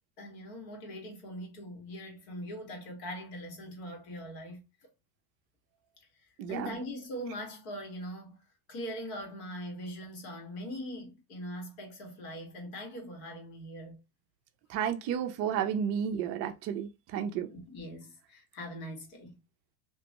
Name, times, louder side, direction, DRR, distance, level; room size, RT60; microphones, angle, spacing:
voice 1, 0.2-4.9 6.5-8.4 8.7-14.0 17.5-19.4, equal, 70° left, 1.7 m, -41 dB
voice 2, 6.4-6.8 14.7-17.5, right 8 dB, 35° right, 0.4 m, -32 dB
3.0 x 2.1 x 2.8 m
supercardioid pair, 135°, 44 cm